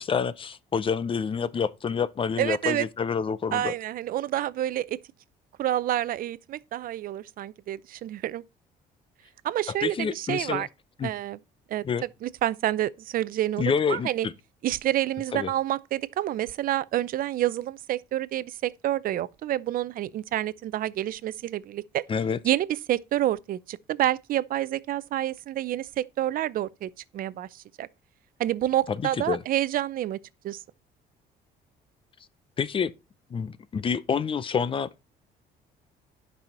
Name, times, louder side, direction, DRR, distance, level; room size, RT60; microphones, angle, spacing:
voice 1, 0.0-3.7 9.7-10.7 11.0-11.1 11.8-12.0 13.6-14.3 15.3-15.5 22.1-22.4 28.9-29.0 29.3-29.4 32.6-32.9 33.3-34.9, left 6 dB, 30° left, 0.6 m, -28 dB
voice 2, 2.4-2.9 3.5-5.0 5.6-8.4 9.4-10.7 11.0-11.4 11.7-11.8 12.2-14.3 14.6-22.0 22.4-27.9 28.4-30.2 30.4-30.6, right 13 dB, 60° right, 0.6 m, -28 dB
10.5 x 5.6 x 4.3 m
cardioid pair, 110°, 17 cm